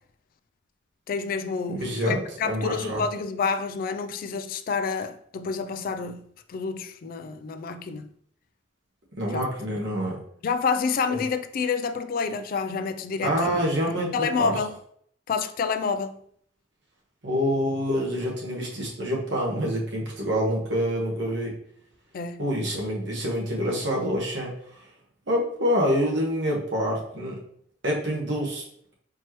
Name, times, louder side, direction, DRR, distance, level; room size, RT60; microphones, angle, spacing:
voice 1, 1.1-8.1 9.3-9.4 10.4-13.6 14.1-14.7 15.3-16.2 22.1-22.4, left 5 dB, 50° left, 0.3 m, -28 dB
voice 2, 1.8-3.0 9.2-10.2 11.1-11.2 13.2-14.6 17.2-21.5 22.4-24.8 25.3-27.4 27.8-28.6, equal, 75° right, 1.3 m, -27 dB
4.4 x 3.0 x 3.0 m
head